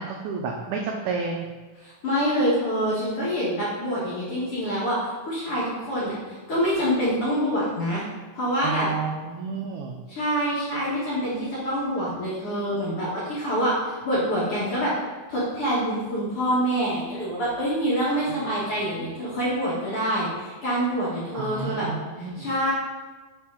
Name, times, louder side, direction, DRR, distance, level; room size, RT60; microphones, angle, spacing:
voice 1, 0.0-1.5 8.6-10.0 18.3-18.4 21.3-22.5, right 5 dB, 85° right, 1 dB, 1.7 m, -31 dB
voice 2, 1.8-5.0 5.2-8.0 8.3-8.9 10.1-14.9 15.3-21.9 22.2-22.7, equal, 60° left, -8 dB, 1.6 m, -26 dB
9.3 x 3.4 x 3.6 m, 1.3 s
omnidirectional pair, 4.1 m